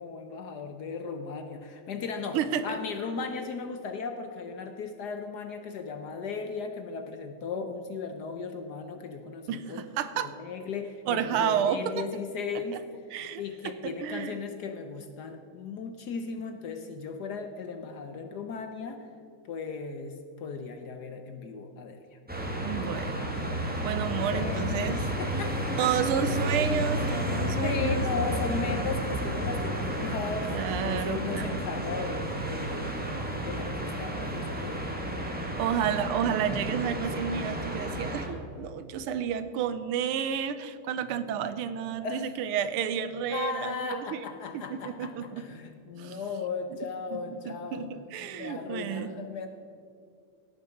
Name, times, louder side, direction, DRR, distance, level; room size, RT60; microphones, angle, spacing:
voice 1, 0.0-2.4 2.6-9.8 10.1-12.8 13.4-19.1 19.5-22.2 24.1-24.9 25.2-25.9 27.6-33.0 33.4-35.0 42.0-42.3 43.3-47.9 48.2-49.5, left 5 dB, 65° left, 6 dB, 1.1 m, -36 dB
voice 2, 2.3-2.8 9.5-10.3 11.1-12.0 12.7-12.8 13.1-13.7 14.0-14.3 22.6-23.3 23.8-25.0 25.8-28.0 30.5-31.6 35.4-44.2 44.5-45.5 45.9-46.2 47.1-49.1, right 8 dB, 90° right, 12 dB, 1.6 m, -31 dB
sound 1, 22.3-38.3, equal, 5° right, 1.1 m, -31 dB
16.5 x 6.8 x 5.8 m, 2.4 s
omnidirectional pair, 2.4 m